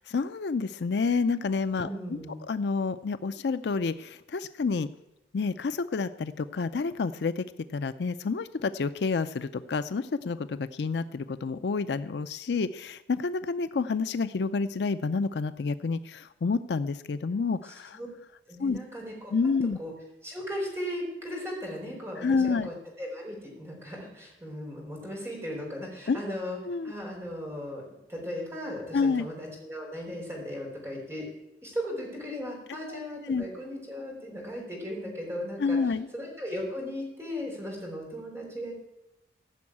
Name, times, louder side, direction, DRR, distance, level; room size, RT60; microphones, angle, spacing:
voice 1, 0.0-2.2 2.5-4.9 5.3-7.4 7.7-18.0 18.6-18.8 19.3-19.8 22.2-22.7 26.1-26.2 26.7-26.9 28.9-29.2 32.9-33.0 33.2-33.4 35.6-36.1, left 4 dB, 65° left, 13 dB, 0.4 m, -29 dB
voice 2, 1.8-2.4 17.7-18.1 18.5-19.3 19.8-19.9 20.2-26.6 26.8-27.8 28.1-31.3 31.6-35.8 36.1-38.7, equal, 15° right, -2 dB, 4.4 m, -37 dB
15.5 x 6.2 x 8.5 m, 0.92 s
head